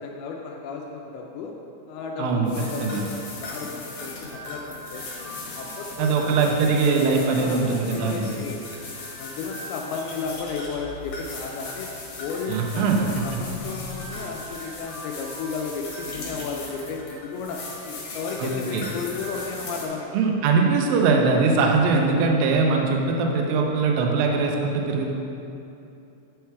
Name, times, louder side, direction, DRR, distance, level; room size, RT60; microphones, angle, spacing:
voice 1, 0.0-1.5 1.9-6.4 7.2-11.9 12.2-20.2, left 5 dB, 85° left, 0 dB, 2.2 m, -34 dB
voice 2, 2.2-2.5 2.8-3.0 6.0-8.2 12.5-13.0 18.4-18.8 20.1-25.1, right 4 dB, 85° right, 1 dB, 2.0 m, -21 dB
sound 1, 2.4-19.8, left 2 dB, 60° left, 2.0 m, -38 dB
9.3 x 4.7 x 4.6 m, 2.8 s
omnidirectional pair, 5.1 m